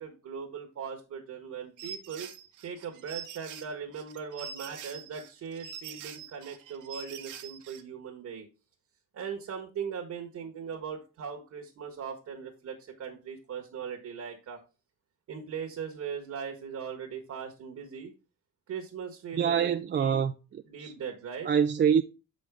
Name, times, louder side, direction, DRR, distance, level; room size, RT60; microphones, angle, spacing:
voice 1, 0.0-2.3 2.6-8.5 9.1-14.6 15.3-18.1 18.7-19.7 20.0-20.2 20.7-21.5, right 6 dB, 65° right, 1.4 m, -39 dB
sound 1, 1.8-7.8, right 8 dB, 85° right, 0.9 m, -44 dB
voice 2, 19.4-20.9 21.4-22.0, right 8 dB, 35° right, 0.4 m, -26 dB
6.4 x 5.3 x 3.5 m
cardioid pair, 90°, 30 cm